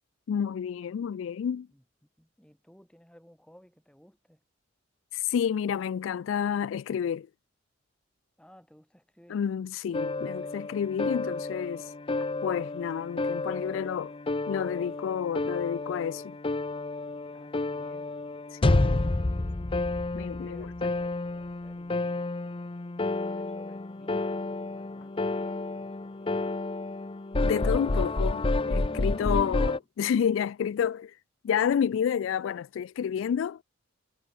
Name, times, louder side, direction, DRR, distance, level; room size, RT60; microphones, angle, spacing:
voice 1, 0.3-1.7 5.1-7.3 9.3-11.9 12.4-14.1 14.5-16.4 18.5-19.0 20.1-20.7 27.4-31.1 31.4-33.6, left 8 dB, 85° left, 0.3 m, -30 dB
voice 2, 2.2-4.4 8.4-9.4 17.3-18.2 20.4-22.4 23.0-26.6, equal, 5° left, 6.3 m, -57 dB
sound 1, 9.9-29.8, left 2 dB, 30° left, 0.6 m, -30 dB
head